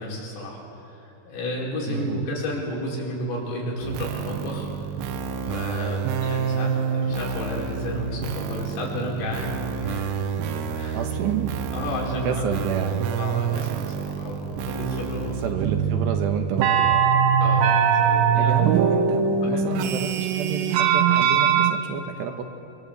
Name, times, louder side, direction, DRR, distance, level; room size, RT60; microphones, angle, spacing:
voice 1, 0.0-4.7 5.4-9.5 9.8-10.2 10.5-11.0 11.7-12.4 13.2-15.3 17.4-18.6 19.4-19.7, left 1 dB, 90° left, -4 dB, 7.6 m, -32 dB
voice 2, 1.9-2.2 10.9-11.5 12.2-13.1 15.4-17.2 18.4-22.4, right 7 dB, 70° right, 4 dB, 3.0 m, -30 dB
sound 1, 3.8-21.7, right 7 dB, 85° right, 3.8 m, -24 dB
25.5 x 23.0 x 8.1 m, 3.0 s
omnidirectional pair, 5.7 m